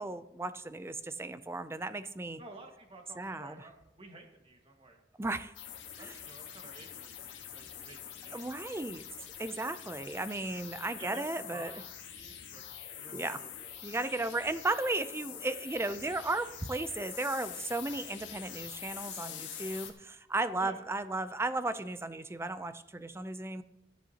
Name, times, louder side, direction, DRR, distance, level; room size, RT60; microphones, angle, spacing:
voice 1, 0.0-2.4 3.2-3.6 5.2-5.5 6.0-6.1 8.3-9.1 9.4-11.7 13.1-13.4 13.8-23.6, right 2 dB, 15° right, 12 dB, 0.4 m, -35 dB
voice 2, 2.4-5.0 6.0-8.8 11.0-12.6 12.9-13.8 20.6-20.8, right 2 dB, 30° right, 2 dB, 1.7 m, -52 dB
sound 1, 5.5-19.9, left 9 dB, 85° left, 1.4 m, -45 dB
14.5 x 10.0 x 2.9 m, 0.89 s
head